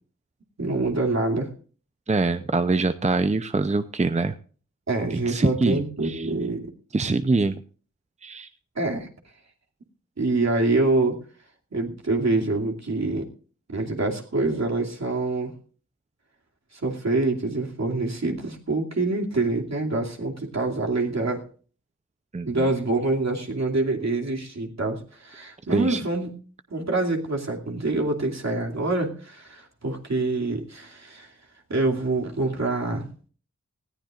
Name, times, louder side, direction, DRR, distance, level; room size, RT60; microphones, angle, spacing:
voice 1, 0.6-1.5 4.9-6.7 8.8-9.1 10.2-11.2 11.7-13.3 13.7-15.5 16.7-21.5 22.4-26.4 26.7-31.3 31.7-33.1, right 2 dB, 60° right, 0 dB, 2.7 m, -26 dB
voice 2, 2.1-4.3 5.1-6.3 6.9-7.6 8.2-8.5 22.3-22.7 25.7-26.0, right 3 dB, 25° right, 10 dB, 0.6 m, -24 dB
19.5 x 14.5 x 2.5 m, 0.41 s
wide cardioid pair, 65°, 30 cm